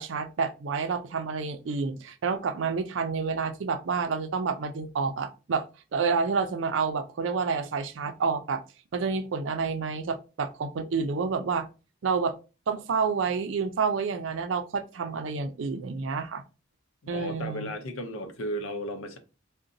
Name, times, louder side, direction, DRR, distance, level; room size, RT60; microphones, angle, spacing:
voice 1, 0.0-5.7 5.9-8.6 8.9-11.7 12.0-12.4 12.7-16.4 17.1-17.7, right 5 dB, 70° right, 0.4 m, -29 dB
voice 2, 17.0-19.2, equal, 85° left, 0.6 m, -35 dB
3.8 x 2.1 x 2.6 m
head